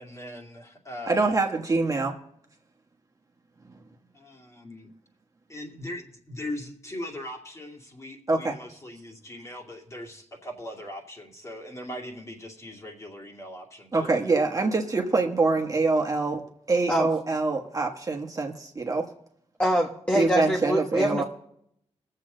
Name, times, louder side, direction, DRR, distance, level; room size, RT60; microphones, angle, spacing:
voice 1, 0.0-1.3 4.1-4.9 5.5-14.2, left 1 dB, 25° left, 0 dB, 2.5 m, -40 dB
voice 2, 1.1-2.2 8.3-8.6 13.9-19.1 20.1-21.2, right 3 dB, 30° right, 2 dB, 1.3 m, -25 dB
voice 3, 19.6-21.2, equal, 10° left, 0 dB, 1.3 m, -24 dB
21.5 x 7.7 x 3.9 m, 0.71 s
wide cardioid pair, 115°, 12 cm